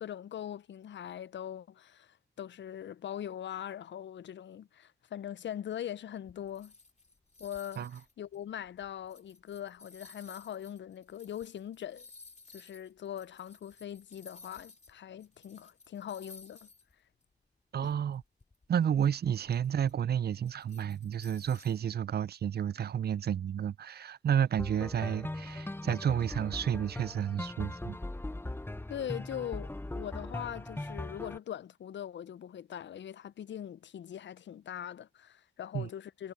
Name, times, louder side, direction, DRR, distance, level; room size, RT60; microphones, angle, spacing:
voice 1, 0.0-6.7 7.4-7.9 8.2-12.1 12.5-16.7 17.8-17.9 28.9-36.3, left 10 dB, 75° left, 0.4 m, -41 dB
sound 1, 6.3-14.9 15.2-16.9 17.2-17.3 17.9-21.8, left 3 dB, 35° left, 2.2 m, -56 dB
voice 2, 17.7-18.2 18.7-28.0 35.7-35.9, right 9 dB, 60° right, 0.4 m, -31 dB
sound 2, 24.6-31.4, left 2 dB, 10° left, 0.7 m, -40 dB
cardioid pair, 65°, 19 cm